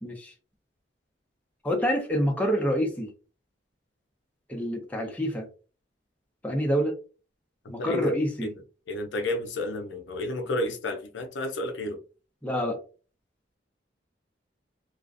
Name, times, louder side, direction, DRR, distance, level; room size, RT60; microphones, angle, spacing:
voice 1, 0.0-0.3 1.6-3.1 4.5-5.5 6.4-7.0 7.7-8.5 12.4-12.8, equal, 10° left, 0.5 m, -27 dB
voice 2, 7.6-8.1 8.4-8.5 8.9-12.0, left 1 dB, 75° left, 0.5 m, -31 dB
2.4 x 2.1 x 2.4 m
head